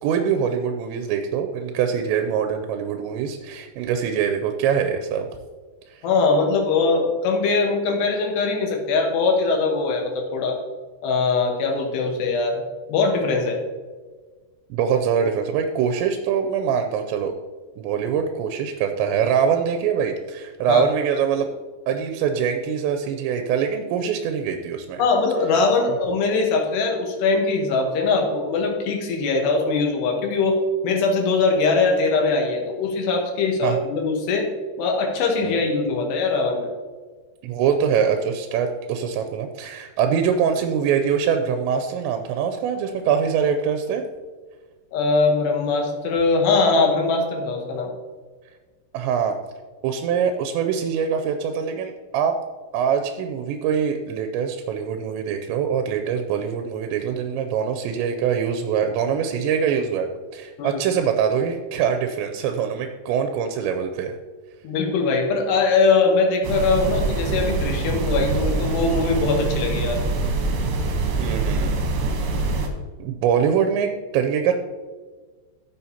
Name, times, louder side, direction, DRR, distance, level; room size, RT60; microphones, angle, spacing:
voice 1, 0.0-5.3 5.9-6.0 14.7-17.3 17.8-21.5 21.9-25.0 33.6-33.8 35.4-35.6 37.4-44.1 48.9-49.4 49.8-52.4 52.7-64.2 71.2-71.8 73.0-74.5, right 7 dB, 85° right, 5 dB, 2.8 m, -23 dB
voice 2, 6.0-10.6 11.0-12.6 12.9-13.6 20.7-20.9 25.0-30.6 30.8-34.5 34.8-36.7 44.9-47.9 60.6-60.8 64.6-70.0, left 4 dB, 75° left, 2 dB, 3.2 m, -21 dB
sound 1, 66.4-72.7, right 3 dB, 70° right, 2.6 m, -24 dB
13.5 x 6.9 x 2.8 m, 1.4 s
omnidirectional pair, 5.2 m